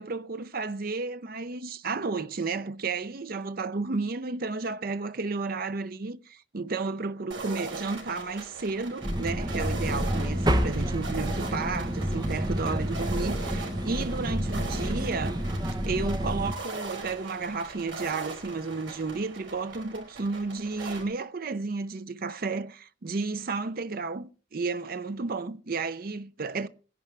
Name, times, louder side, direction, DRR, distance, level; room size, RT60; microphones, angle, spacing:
voice 1, 0.0-15.4 15.8-26.7, right 4 dB, 50° right, 0.6 m, -32 dB
sound 1, 7.3-21.0, right 3 dB, 75° right, 4.2 m, -40 dB
sound 2, 9.0-16.5, equal, 20° right, 1.0 m, -29 dB
20.0 x 11.0 x 3.4 m
head